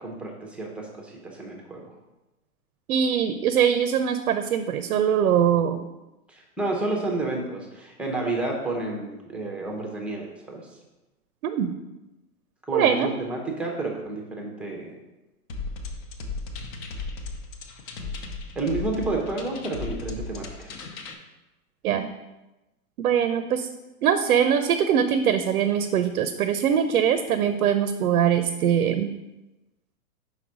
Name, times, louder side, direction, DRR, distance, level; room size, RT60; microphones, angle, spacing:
voice 1, 0.0-1.9 6.3-10.6 12.7-14.9 18.5-20.7, right 2 dB, 5° right, -1 dB, 0.7 m, -30 dB
voice 2, 2.9-5.9 11.4-11.7 12.7-13.1 21.8-22.1 23.0-23.7 24.0-29.1, right 8 dB, 75° right, 9 dB, 0.7 m, -22 dB
sound 1, 15.5-21.1, left 3 dB, 35° left, 0.7 m, -36 dB
5.4 x 4.1 x 6.1 m, 1.0 s
hypercardioid pair, 140°, 45 cm